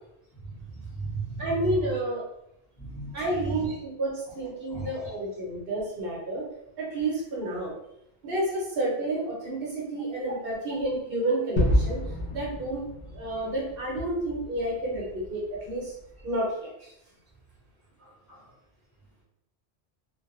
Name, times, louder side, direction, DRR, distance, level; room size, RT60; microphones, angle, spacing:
voice 1, 0.4-1.5 2.8-3.7 4.7-5.1 18.0-18.5, right 3 dB, 20° left, -8 dB, 0.7 m, -37 dB
voice 2, 1.4-2.2 3.1-6.4 6.8-7.7 8.2-12.8 13.1-15.9 16.2-16.9, right 1 dB, 65° right, -3 dB, 0.9 m, -30 dB
Gunshot gunfire / Fireworks / Boom, 11.6-16.4, left 1 dB, 55° left, 0.6 m, -30 dB
2.1 x 2.0 x 2.9 m, 0.81 s
omnidirectional pair, 1.0 m